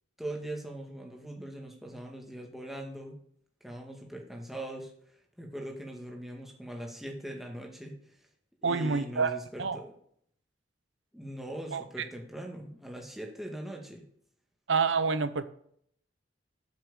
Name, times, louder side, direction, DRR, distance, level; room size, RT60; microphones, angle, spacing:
voice 1, 0.2-3.2 3.6-4.9 5.4-7.9 8.6-9.9 11.1-14.0, right 1 dB, ahead, 0 dB, 1.9 m, -41 dB
voice 2, 8.6-9.8 11.7-12.0 14.7-15.4, right 5 dB, 85° right, 12 dB, 0.8 m, -28 dB
8.4 x 6.3 x 6.6 m, 0.65 s
head